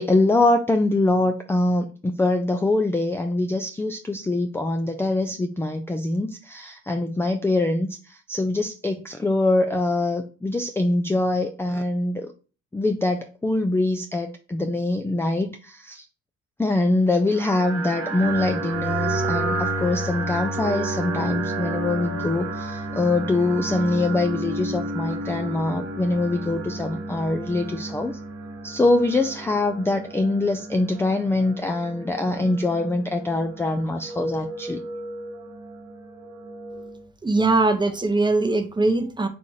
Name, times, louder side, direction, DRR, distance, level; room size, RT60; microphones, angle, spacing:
voice 1, 0.0-12.3 12.7-16.0 16.6-28.2 28.6-34.8, left 2 dB, 10° left, 6 dB, 0.4 m, -24 dB
sound 1, 17.3-37.0, right 2 dB, 50° right, 1.3 m, -31 dB
voice 2, 37.2-39.3, right 2 dB, 15° right, 5 dB, 0.7 m, -21 dB
4.2 x 2.5 x 4.6 m, 0.36 s
cardioid pair, 90°, 30 cm